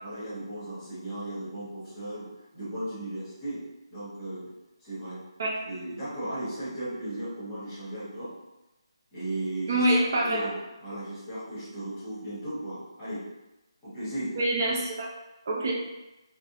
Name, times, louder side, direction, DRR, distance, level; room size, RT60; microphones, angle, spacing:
voice 1, 0.0-2.3 2.5-3.6 3.9-4.5 4.8-5.2 5.6-8.3 9.1-13.2 13.8-14.4, right 1 dB, 10° left, -12 dB, 0.8 m, -36 dB
voice 2, 9.7-10.5 14.4-15.1 15.5-15.7, right 1 dB, 30° right, -3 dB, 0.4 m, -25 dB
2.5 x 2.0 x 2.7 m, 1.0 s
hypercardioid pair, 175°, 3 cm